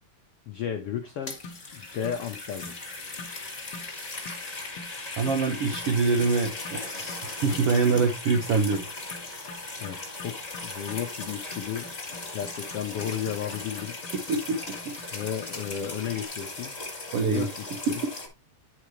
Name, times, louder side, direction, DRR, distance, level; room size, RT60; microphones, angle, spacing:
voice 1, 0.5-1.4 1.7-2.7 9.8-11.9 12.3-14.0 15.1-16.8 17.3-18.0, left 9 dB, 90° left, 1.2 m, -33 dB
sound 1, 1.0-18.3, left 3 dB, 30° left, 0.7 m, -38 dB
sound 2, 1.4-1.7 2.0-2.2 2.6-2.8 3.2-3.4 3.7-3.9 4.3-4.5 4.8-5.0 5.3-5.4 5.7-5.9 6.2-6.4 6.6-16.3, left 4 dB, 60° left, 1.6 m, -46 dB
voice 2, 5.2-8.8 14.3-14.6 14.8-14.9 17.1-17.5, right 4 dB, 75° right, 1.3 m, -25 dB
10.0 x 5.0 x 3.1 m
omnidirectional pair, 3.8 m